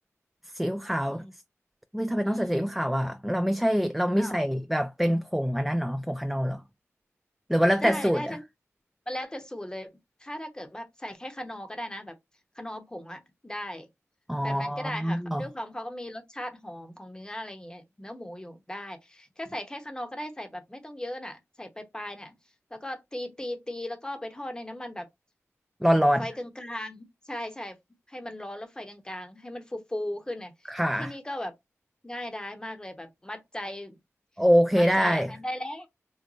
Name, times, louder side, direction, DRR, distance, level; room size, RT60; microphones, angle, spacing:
voice 1, 0.5-1.2 1.9-6.6 7.5-8.4 14.3-15.4 25.8-26.3 30.7-31.1 34.4-35.3, equal, 5° right, 0.3 m, -25 dB
voice 2, 2.2-2.7 4.2-4.4 7.8-8.4 9.1-12.1 12.6-13.9 14.4-22.3 22.7-25.1 26.2-27.8 28.1-31.5 32.0-34.0 34.7-35.9, left 1 dB, 15° left, 0.9 m, -37 dB
3.9 x 2.1 x 3.0 m
wide cardioid pair, 70°, 5 cm